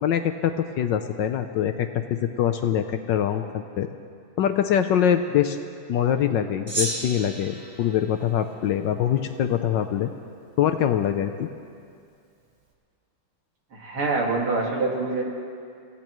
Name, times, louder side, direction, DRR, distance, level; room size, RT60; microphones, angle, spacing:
voice 1, 0.0-3.9 4.4-5.6 5.9-10.1 10.6-11.5, left 9 dB, 70° left, 8 dB, 1.2 m, -24 dB
Gong, 6.7-9.3, right 1 dB, 30° right, 1.9 m, -34 dB
voice 2, 13.7-15.2, right 3 dB, 85° right, -1 dB, 3.0 m, -25 dB
28.5 x 16.5 x 3.1 m, 2.3 s
omnidirectional pair, 2.3 m